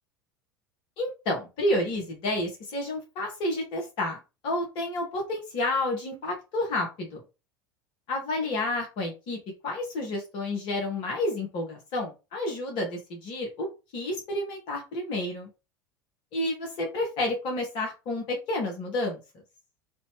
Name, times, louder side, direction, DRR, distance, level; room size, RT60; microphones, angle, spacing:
voice 1, 1.0-4.2 4.4-7.2 8.1-9.4 9.6-13.7 13.9-15.5 16.3-19.2, left 1 dB, 50° left, 1 dB, 1.7 m, -30 dB
4.2 x 2.8 x 3.2 m, 0.28 s
figure-of-eight pair, 75°, 11 cm